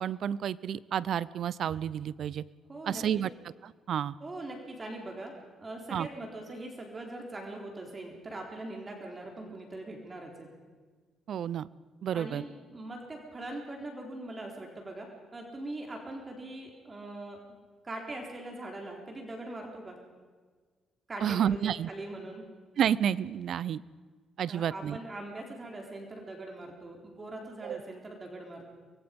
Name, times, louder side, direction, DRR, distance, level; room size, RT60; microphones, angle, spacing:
voice 1, 0.0-2.4 2.9-3.3 3.9-4.1 5.9-6.1 11.3-11.7 12.0-12.4 21.2-21.9 22.8-23.8 24.4-25.0 27.6-27.8, right 9 dB, 65° right, 20 dB, 0.6 m, -30 dB
voice 2, 2.7-3.2 4.2-5.3 5.6-10.5 12.1-17.4 17.8-20.0 21.1-22.5 24.5-28.6, right 2 dB, 30° right, 1 dB, 4.0 m, -41 dB
24.5 x 22.0 x 5.3 m, 1.5 s
cardioid pair, 90°, 0 cm